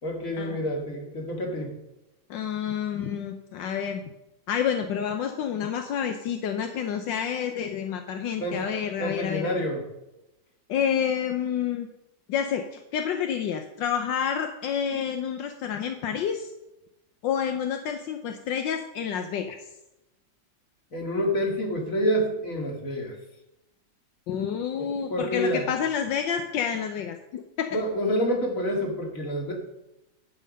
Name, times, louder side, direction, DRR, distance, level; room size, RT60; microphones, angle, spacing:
voice 1, 0.0-1.7 8.4-8.6 9.0-9.8 20.9-23.2 24.8-25.7 27.7-29.5, equal, 45° left, 1 dB, 2.5 m, -28 dB
voice 2, 2.3-4.0 4.5-9.6 10.7-11.9 12.3-16.5 17.2-19.6 24.3-27.8, left 8 dB, 80° left, 6 dB, 1.5 m, -29 dB
11.0 x 7.4 x 5.3 m, 0.93 s
omnidirectional pair, 2.0 m